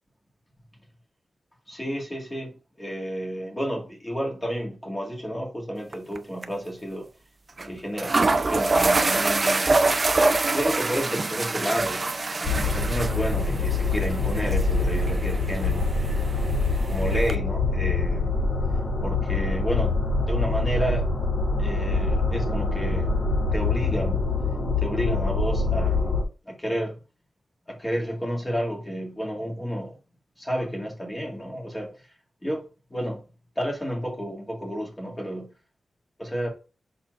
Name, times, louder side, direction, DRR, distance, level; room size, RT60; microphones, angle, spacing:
voice 1, 1.7-7.1 7.6-10.0 10.5-12.1 12.7-16.4 16.9-21.1 21.6-23.1 23.5-27.0 27.7-29.9 30.4-32.1 32.4-33.2 33.6-35.5 36.2-36.5, equal, 10° left, 1.9 m, -31 dB
sound 1, 5.9-6.2 6.4-6.5 7.6-7.7 8.0-17.3, right 3 dB, 30° right, 0.5 m, -25 dB
sound 2, 12.4-26.2, left 3 dB, 65° left, 2.6 m, -25 dB
6.1 x 4.2 x 3.7 m
wide cardioid pair, 175°, 0 cm